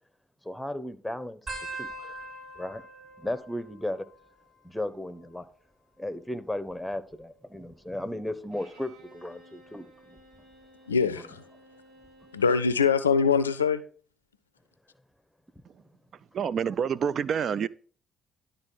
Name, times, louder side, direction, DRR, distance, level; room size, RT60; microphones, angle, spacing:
voice 1, 0.4-1.4 1.7-2.2 2.6-2.8 3.2-4.0 4.6-5.5 6.0-10.2, left 1 dB, 5° left, 1.1 m, -35 dB
sound 1, 1.5-4.6 4.9-5.5 6.5-8.0 8.6-9.0 10.2-10.5 12.0-12.1, right 2 dB, 35° right, 4.1 m, -44 dB
Bowed string instrument, 8.5-13.0, right 1 dB, 70° right, 2.0 m, -55 dB
voice 2, 10.9-11.4 12.3-13.8, left 5 dB, 90° left, 0.4 m, -23 dB
voice 3, 16.3-17.7, right 7 dB, 55° right, 0.3 m, -27 dB
11.5 x 4.0 x 6.2 m
figure-of-eight pair, 45°, 0 cm